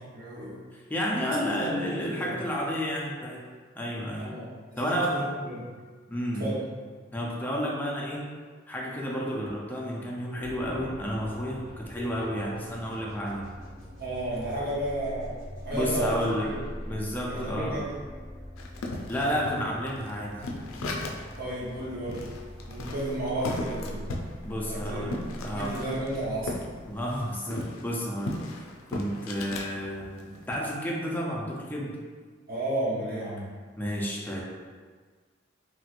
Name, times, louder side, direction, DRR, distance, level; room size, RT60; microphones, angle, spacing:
voice 1, 0.1-0.6 1.2-2.3 4.2-5.7 6.4-6.6 14.0-15.4 15.6-16.6 17.3-17.9 21.4-22.2 22.7-24.1 24.7-25.0 25.3-26.6 32.5-33.5, right 1 dB, 50° right, -7 dB, 0.9 m, -33 dB
voice 2, 0.7-3.4 3.7-4.3 4.8-5.2 6.1-6.5 7.1-8.2 8.7-13.4 15.7-16.5 16.8-17.8 19.1-20.4 24.4-25.1 25.4-25.7 26.9-28.4 28.9-32.0 33.8-34.4, equal, 10° left, -3 dB, 0.4 m, -31 dB
sound 1, 10.4-28.2, equal, 90° right, 1.3 m, -43 dB
sound 2, 18.6-21.4 21.7-21.8 22.1-26.7 27.0-29.7 30.2-30.6, left 2 dB, 90° left, 0.4 m, -36 dB
3.0 x 2.9 x 2.5 m, 1.5 s
head